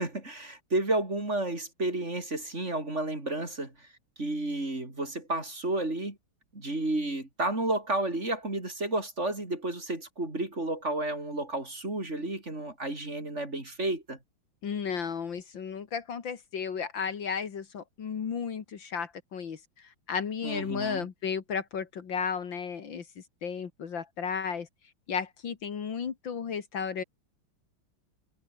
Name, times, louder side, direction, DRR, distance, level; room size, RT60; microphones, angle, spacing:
voice 1, 0.0-3.9 4.2-6.2 6.5-14.2 20.4-21.1, right 2 dB, 30° right, 5.1 m, -31 dB
voice 2, 14.6-19.6 20.1-24.7 25.1-27.0, left 6 dB, 65° left, 2.5 m, -34 dB
omnidirectional pair, 2.3 m